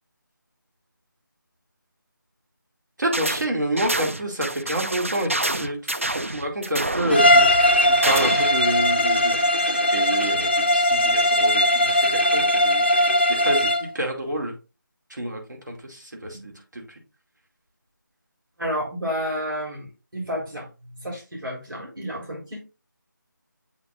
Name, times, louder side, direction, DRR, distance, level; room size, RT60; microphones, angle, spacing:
voice 1, 3.0-5.9 6.3-14.5 15.1-17.0, right 1 dB, 60° right, 1 dB, 2.5 m, -29 dB
sound 1, 3.1-3.5 3.8-8.6, right 1 dB, 40° right, 0.4 m, -28 dB
Bowed string instrument, 7.1-13.9, left 1 dB, 30° left, 0.5 m, -19 dB
voice 2, 18.6-22.6, equal, 85° right, -4 dB, 4.0 m, -31 dB
8.4 x 5.2 x 2.5 m, 0.30 s
figure-of-eight pair, 180°, 11 cm